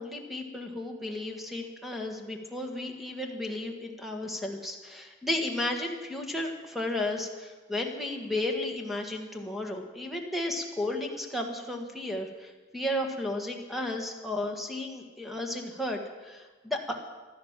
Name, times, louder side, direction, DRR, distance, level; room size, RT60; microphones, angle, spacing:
voice 1, 0.0-16.9, left 1 dB, ahead, 3 dB, 1.7 m, -33 dB
16.0 x 12.0 x 7.4 m, 1.3 s
head